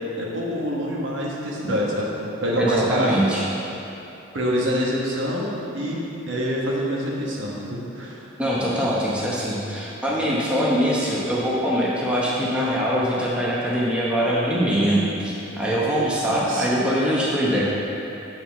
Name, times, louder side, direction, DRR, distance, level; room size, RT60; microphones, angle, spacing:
voice 1, 0.2-3.2 4.3-6.0 6.3-8.2 16.2-16.7, equal, 65° right, -4 dB, 1.3 m, -26 dB
voice 2, 2.6-3.5 8.4-17.6, equal, 5° right, -7 dB, 0.9 m, -23 dB
7.4 x 4.6 x 5.9 m, 2.9 s
head